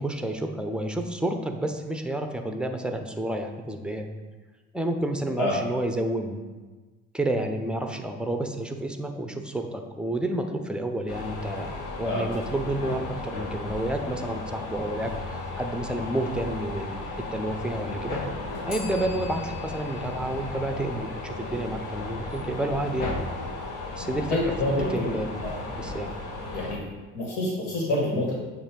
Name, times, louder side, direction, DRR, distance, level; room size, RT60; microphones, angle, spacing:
voice 1, 0.0-4.1 4.7-6.4 7.1-11.7 12.0-18.2 18.7-23.2 24.0-24.5 24.9-25.3 25.8-26.1, right 1 dB, 5° right, 5 dB, 0.6 m, -30 dB
sound 1, 11.1-26.8, left 2 dB, 65° left, 1.2 m, -35 dB
Bell, 18.7-21.5, left 6 dB, 35° left, 2.0 m, -45 dB
voice 2, 24.3-25.1 25.4-25.6 26.5-26.8 27.1-28.4, left 1 dB, 85° left, -2 dB, 1.7 m, -27 dB
7.1 x 2.7 x 5.2 m, 1.3 s
hypercardioid pair, 70°, 34 cm